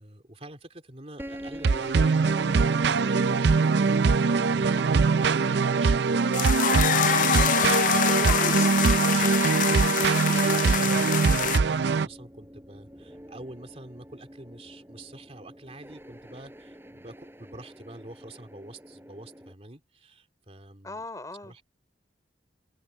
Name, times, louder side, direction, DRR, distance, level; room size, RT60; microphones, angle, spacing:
voice 1, 0.0-8.3 9.1-21.0 21.4-21.6, right 1 dB, 35° right, 3.2 m, -46 dB
sound 1, 1.2-19.5, equal, 10° right, 7.9 m, -45 dB
sound 2, 1.6-12.1, right 4 dB, 65° right, 0.5 m, -22 dB
sound 3, 6.3-11.6, left 9 dB, 45° left, 0.5 m, -25 dB
voice 2, 8.0-9.3 20.8-21.6, left 2 dB, 20° left, 3.5 m, -38 dB
head